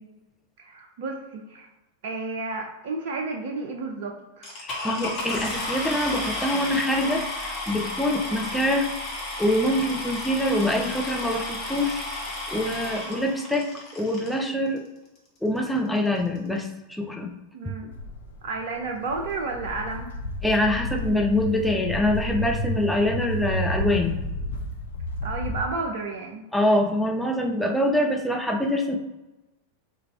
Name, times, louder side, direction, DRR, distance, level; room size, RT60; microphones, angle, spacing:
voice 1, 0.6-1.7 2.0-4.5 13.0-13.3 17.5-17.9 18.4-20.1 25.2-26.4, right 3 dB, 50° right, 2 dB, 0.4 m, -32 dB
sound 1, 4.4-14.4 15.2-15.3 15.8-15.9 16.1-16.4, left 2 dB, 35° left, 1.0 m, -32 dB
voice 2, 4.6-8.9 9.4-14.8 15.4-17.3 17.6-17.7 20.4-24.2 26.5-29.0, left 1 dB, ahead, 1 dB, 0.5 m, -25 dB
Walk footsteps, 17.9-25.6, left 1 dB, 60° left, 0.5 m, -31 dB
3.3 x 2.3 x 3.2 m, 1.0 s
figure-of-eight pair, 90°, 0 cm